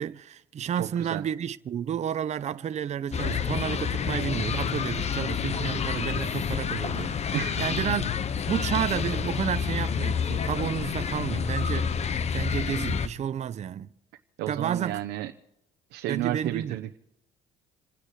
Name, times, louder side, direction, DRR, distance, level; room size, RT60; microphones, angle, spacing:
voice 1, 0.0-8.1 8.5-13.9 14.5-15.0 16.1-16.8, right 9 dB, 40° right, 0.7 m, -31 dB
voice 2, 0.7-1.2 7.3-7.7 14.4-15.3 15.9-17.0, right 14 dB, 90° right, 0.9 m, -32 dB
sound 1, 3.1-13.1, left 7 dB, 40° left, 1.0 m, -29 dB
28.0 x 9.9 x 4.8 m
cardioid pair, 110°, 17 cm